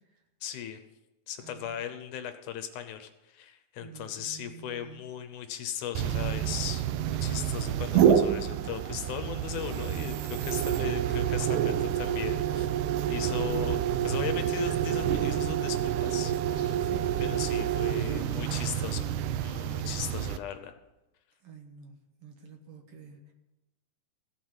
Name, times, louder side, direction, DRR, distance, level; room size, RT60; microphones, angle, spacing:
voice 1, 0.4-0.8 1.3-12.7 13.1-16.9 17.2-19.1 19.4-20.7, left 9 dB, 80° left, 9 dB, 2.3 m, -38 dB
voice 2, 3.8-5.0 16.8-17.2 21.4-23.2, right 6 dB, 55° right, 4 dB, 2.0 m, -48 dB
sound 1, 6.0-20.4, right 10 dB, 90° right, 2.1 m, -28 dB
15.0 x 6.1 x 7.8 m, 1.0 s
omnidirectional pair, 3.6 m